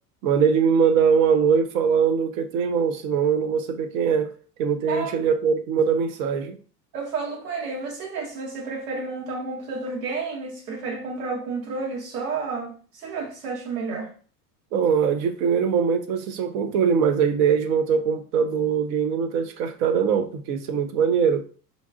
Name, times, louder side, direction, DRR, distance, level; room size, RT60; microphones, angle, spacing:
voice 1, 0.2-4.3 4.6-6.6 14.7-21.4, right 6 dB, 55° right, 0.8 m, -22 dB
voice 2, 4.9-5.2 6.9-14.1, right 4 dB, 70° right, 1.6 m, -31 dB
5.2 x 2.4 x 2.4 m
hypercardioid pair, 85°, 48 cm